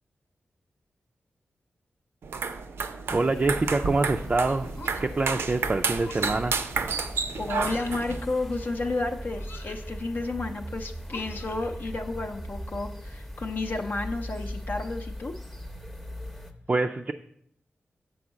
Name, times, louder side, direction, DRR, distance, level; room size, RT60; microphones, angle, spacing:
sound 1, 2.2-8.2, right 5 dB, 85° right, 0.6 m, -31 dB
sound 2, 3.1-16.5, equal, 5° left, 0.7 m, -39 dB
voice 1, 3.1-4.7 5.0-6.6 16.7-17.1, right 3 dB, 30° right, 4 dB, 0.4 m, -25 dB
sound 3, 4.7-5.3 6.0-6.5 7.6-8.1 9.4-9.9 11.1-11.9, left 3 dB, 65° left, 0.9 m, -45 dB
voice 2, 7.4-15.3, left 2 dB, 45° left, 4 dB, 0.6 m, -32 dB
7.0 x 4.6 x 6.3 m, 0.72 s
wide cardioid pair, 95°, 4 cm